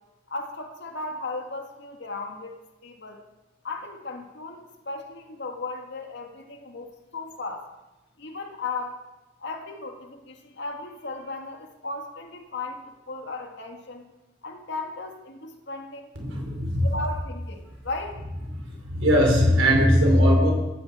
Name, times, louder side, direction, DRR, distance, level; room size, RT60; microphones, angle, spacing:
voice 1, 0.3-2.5 2.8-3.2 3.6-7.7 8.2-9.0 9.4-14.0 14.4-16.1 16.8-18.2, left 3 dB, 65° left, 3 dB, 1.9 m, -36 dB
voice 2, 16.2-16.8 18.9-20.5, equal, 85° right, 1 dB, 4.6 m, -19 dB
16.0 x 14.5 x 4.3 m, 1.0 s
head